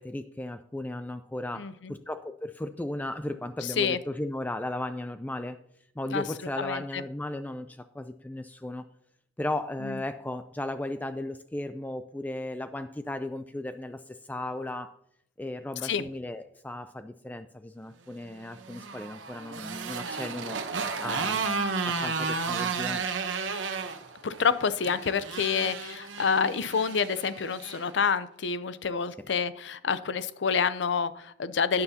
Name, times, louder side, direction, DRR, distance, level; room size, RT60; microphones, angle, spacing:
voice 1, 0.0-5.6 6.0-8.8 9.4-15.0 15.4-20.6 21.0-23.1, left 1 dB, 10° left, 10 dB, 0.3 m, -36 dB
voice 2, 1.5-1.9 3.6-4.0 6.1-6.2 6.6-7.0 9.8-10.0 15.8-16.0 24.2-31.8, left 6 dB, 70° left, 14 dB, 0.5 m, -28 dB
Motorcycle, 18.4-27.8, right 5 dB, 80° right, 0.9 m, -33 dB
12.5 x 9.5 x 2.8 m, 0.72 s
head